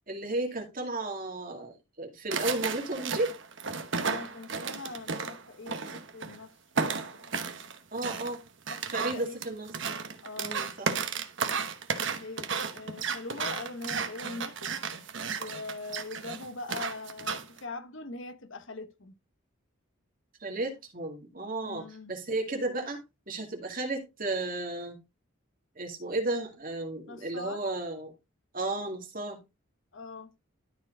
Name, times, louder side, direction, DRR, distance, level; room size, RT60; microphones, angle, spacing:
voice 1, 0.1-3.4 7.9-8.4 8.9-9.7 10.4-10.9 20.4-25.0 25.8-28.1 28.5-29.4, right 2 dB, 40° right, 2.2 m, -33 dB
sound 1, 2.3-6.4 6.7-17.6, right 5 dB, 60° right, 1.0 m, -34 dB
voice 2, 4.0-6.5 7.0-7.7 8.9-9.4 10.2-10.6 12.1-14.7 15.4-19.1 21.6-22.1 27.1-27.6 29.9-30.3, left 3 dB, 60° left, 1.0 m, -42 dB
12.5 x 4.5 x 3.8 m
head